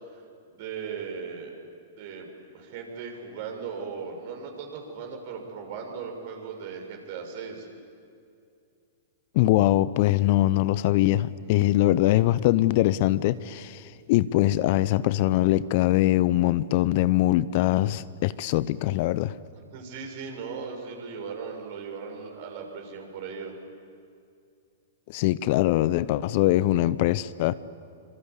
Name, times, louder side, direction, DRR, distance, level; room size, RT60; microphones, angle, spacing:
voice 1, 0.6-1.5 2.0-2.3 2.5-7.7 19.5-23.5, right 5 dB, 50° right, 6.6 m, -37 dB
voice 2, 9.3-13.8 14.1-19.3 25.1-27.5, left 15 dB, 50° left, 0.7 m, -22 dB
26.0 x 26.0 x 8.4 m
figure-of-eight pair, 105°, 0 cm